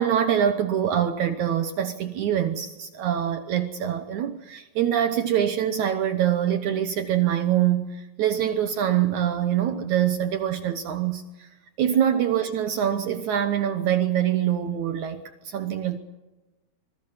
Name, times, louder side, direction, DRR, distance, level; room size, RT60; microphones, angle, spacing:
voice 1, 0.0-11.5 11.8-16.0, right 10 dB, 75° right, 9 dB, 1.8 m, -24 dB
25.5 x 23.0 x 5.6 m, 1.1 s
omnidirectional pair, 4.7 m